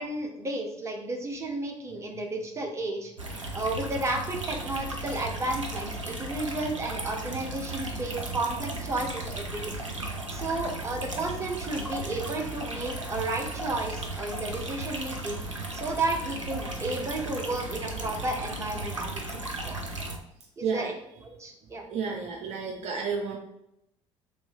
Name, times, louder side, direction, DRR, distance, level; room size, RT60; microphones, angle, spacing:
voice 1, 0.0-3.1 3.5-9.6 10.3-19.8 20.6-20.9 21.2-21.8, right 2 dB, 20° right, 1 dB, 0.8 m, -33 dB
sound 1, 3.2-20.2, right 2 dB, 85° right, 0.5 m, -35 dB
voice 2, 21.9-23.4, right 5 dB, 45° right, 1 dB, 0.6 m, -31 dB
3.3 x 3.0 x 4.2 m, 0.81 s
figure-of-eight pair, 60°, 16 cm